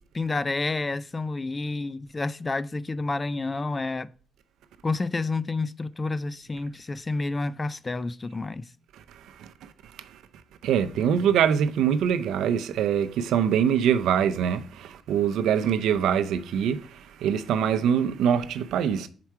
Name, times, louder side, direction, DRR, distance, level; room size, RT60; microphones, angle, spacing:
voice 1, 0.1-4.1 4.8-8.7, left 3 dB, 25° left, 0.3 m, -29 dB
voice 2, 10.6-19.1, right 8 dB, 80° right, 0.5 m, -24 dB
5.8 x 4.5 x 4.7 m
cardioid pair, 90°, 0 cm